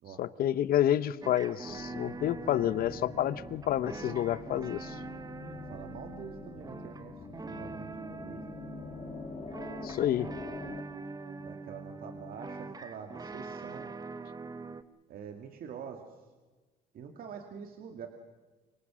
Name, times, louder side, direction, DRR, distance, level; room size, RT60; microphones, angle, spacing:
voice 1, 0.2-5.0 9.8-10.3, left 11 dB, 60° left, 17 dB, 0.9 m, -29 dB
sound 1, 1.2-14.8, right 4 dB, 20° right, 1.1 m, -44 dB
sound 2, 1.7-10.8, left 5 dB, 35° left, 2.4 m, -45 dB
voice 2, 5.4-8.4 9.5-9.6 11.4-14.0 15.1-16.1 16.9-18.1, right 7 dB, 60° right, 5 dB, 2.2 m, -46 dB
26.5 x 23.5 x 6.3 m, 1.3 s
cardioid pair, 110°, 17 cm